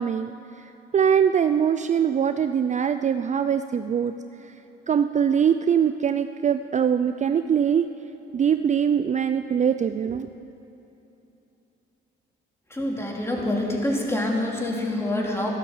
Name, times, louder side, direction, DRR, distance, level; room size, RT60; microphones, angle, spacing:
voice 1, 0.0-4.1 4.4-4.5 4.9-7.9 8.3-10.3, right 8 dB, 35° right, 10 dB, 0.4 m, -22 dB
voice 2, 12.7-15.5, left 1 dB, 15° left, -1 dB, 2.8 m, -26 dB
13.0 x 12.0 x 7.3 m, 3.0 s
cardioid pair, 90°, 20 cm